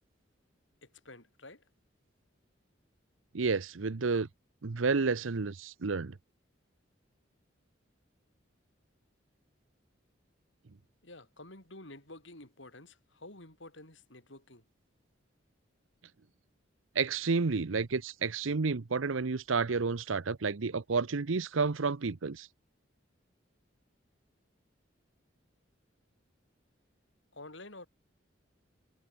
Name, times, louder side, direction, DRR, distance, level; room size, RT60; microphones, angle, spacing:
voice 1, 0.8-1.6 11.0-14.6 27.3-27.9, left 2 dB, 70° left, 5.8 m, -50 dB
voice 2, 3.3-4.3 4.6-6.1 16.9-22.5, right 4 dB, 85° right, 0.7 m, -30 dB
head